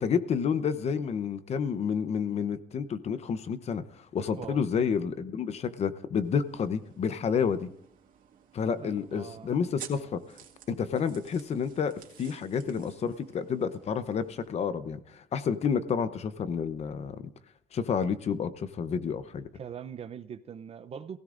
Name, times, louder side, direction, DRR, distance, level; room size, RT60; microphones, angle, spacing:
voice 1, 0.0-7.7 8.5-10.2 10.7-17.2 17.7-19.5, left 6 dB, 50° left, 0.8 m, -30 dB
voice 2, 4.3-4.9 8.8-9.6 19.5-21.2, right 7 dB, 45° right, 0.7 m, -42 dB
sound 1, 6.2-14.5, right 9 dB, 70° right, 2.0 m, -52 dB
26.0 x 16.5 x 2.6 m
cardioid pair, 130°, 14 cm